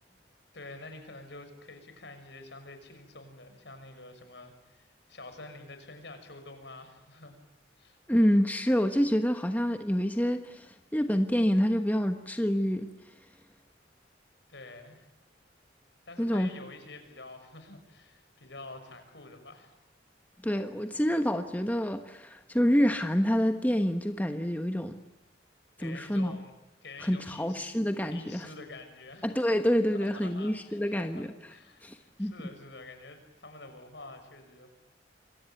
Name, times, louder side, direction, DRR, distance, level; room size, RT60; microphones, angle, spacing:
voice 1, 0.5-7.4 7.8-8.0 14.5-15.1 16.1-19.7 25.8-27.7 28.1-29.3 29.9-34.7, left 2 dB, 65° left, 7 dB, 6.3 m, -48 dB
voice 2, 8.1-12.9 16.2-16.5 20.4-25.0 25.8-26.4 27.0-28.5 29.2-31.3 31.8-32.3, equal, 10° left, 6 dB, 1.2 m, -27 dB
27.5 x 23.5 x 9.1 m, 0.98 s
head